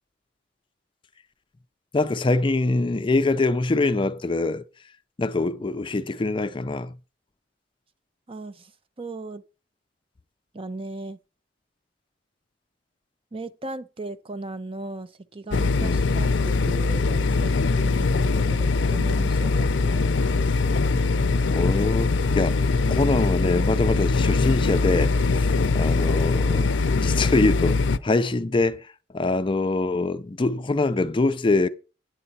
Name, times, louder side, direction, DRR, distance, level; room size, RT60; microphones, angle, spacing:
voice 1, 1.9-4.6 5.2-6.9 15.8-16.0 21.5-22.6 22.9-31.7, left 2 dB, 25° left, 0.4 m, -24 dB
voice 2, 8.3-8.7 9.0-9.4 10.5-11.2 13.3-20.1, right 2 dB, 30° right, 0.6 m, -37 dB
sound 1, 15.5-28.0, left 3 dB, 80° left, 0.5 m, -22 dB
sound 2, 19.0-25.8, equal, 5° right, 1.2 m, -43 dB
9.8 x 7.9 x 4.1 m
head